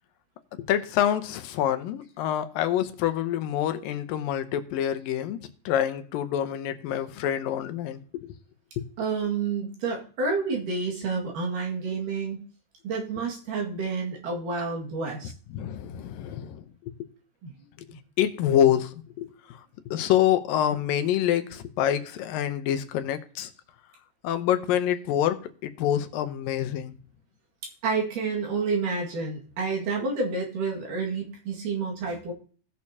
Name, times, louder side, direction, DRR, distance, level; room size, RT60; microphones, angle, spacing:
voice 1, 0.6-8.3 8.8-8.9 15.5-16.7 18.2-19.6 19.9-23.5 24.2-26.9, left 11 dB, 85° left, 2.5 m, -26 dB
voice 2, 9.0-12.4 12.8-15.3 17.4-17.5 27.8-32.3, right 4 dB, 70° right, 3.6 m, -29 dB
18.0 x 6.5 x 2.8 m
omnidirectional pair, 4.0 m